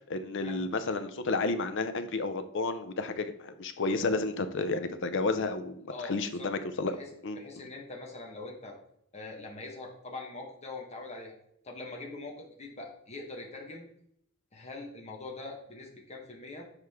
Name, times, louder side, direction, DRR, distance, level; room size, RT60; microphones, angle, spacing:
voice 1, 0.1-7.0 7.2-7.4, left 3 dB, 60° left, 9 dB, 0.6 m, -31 dB
voice 2, 5.9-6.5 6.9-7.1 7.3-8.8 9.1-11.3 11.6-13.8 14.5-16.6, left 2 dB, 30° left, 0 dB, 1.3 m, -43 dB
6.5 x 4.8 x 3.6 m, 0.72 s
head